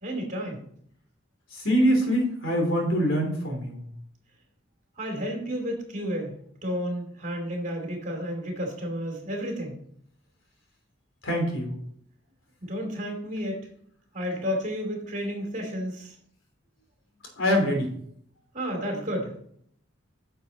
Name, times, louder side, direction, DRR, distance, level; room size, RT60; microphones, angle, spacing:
voice 1, 0.0-0.6 5.0-6.4 6.6-9.8 12.6-13.7 14.1-16.1 18.5-19.3, equal, 40° right, 1 dB, 2.8 m, -31 dB
voice 2, 1.5-3.8 11.2-11.7 17.4-17.9, equal, 80° left, 2 dB, 3.0 m, -24 dB
9.3 x 6.8 x 4.1 m, 0.66 s
head